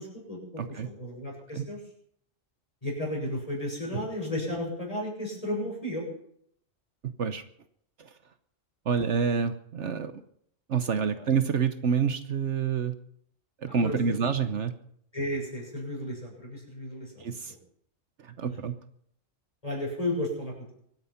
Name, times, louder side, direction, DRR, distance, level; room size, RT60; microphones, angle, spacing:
voice 1, 0.0-1.8 2.8-6.1 13.6-14.2 15.1-17.6 18.5-18.6 19.6-20.7, left 1 dB, 30° left, -1 dB, 6.7 m, -34 dB
voice 2, 0.6-0.9 1.5-1.7 7.0-7.4 8.0-8.1 8.8-10.2 10.7-12.9 13.6-14.7 17.2-17.5 18.2-18.7, right 6 dB, 65° right, 10 dB, 1.2 m, -28 dB
24.0 x 9.6 x 5.8 m, 0.67 s
omnidirectional pair, 1.3 m